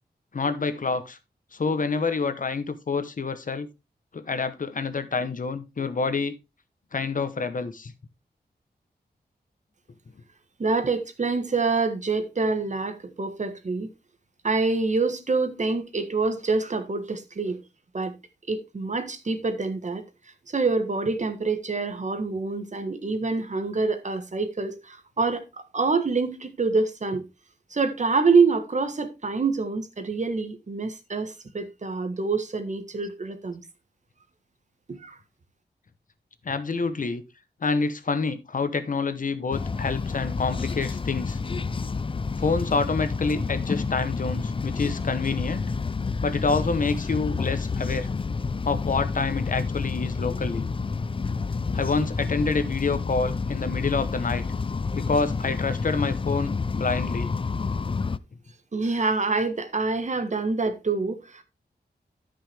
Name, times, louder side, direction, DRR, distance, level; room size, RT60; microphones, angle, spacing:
voice 1, 0.3-1.2 1.5-3.7 4.1-6.3 6.9-7.9 36.4-37.2 37.6-41.4 42.4-45.7 46.2-48.1 48.6-50.6 51.7-54.4 54.9-57.3, left 4 dB, 50° left, 1.0 m, -27 dB
voice 2, 10.6-13.9 14.4-17.6 17.9-18.1 18.5-20.0 20.5-25.4 25.7-27.2 27.7-33.6 34.9-35.2 58.7-61.4, right 4 dB, 45° right, 1.4 m, -26 dB
sound 1, 39.5-58.2, left 4 dB, 30° left, 0.4 m, -29 dB
13.0 x 5.7 x 3.4 m
wide cardioid pair, 115°, 17 cm